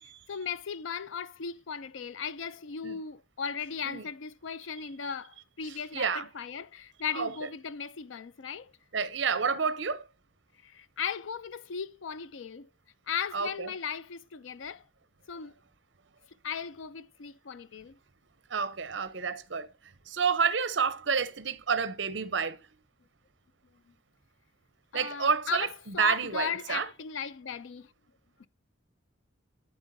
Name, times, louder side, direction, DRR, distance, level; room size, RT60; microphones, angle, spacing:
voice 1, 0.3-8.7 10.6-12.7 13.1-14.8 15.3-15.5 16.4-18.0 23.9-24.0 24.9-27.9, left 7 dB, 80° left, 0.5 m, -37 dB
voice 2, 5.9-6.3 7.1-7.3 8.9-10.0 13.3-13.7 18.5-19.7 20.1-22.6 24.9-25.7 26.0-26.9, right 6 dB, 65° right, 0.8 m, -29 dB
9.7 x 8.0 x 2.7 m
head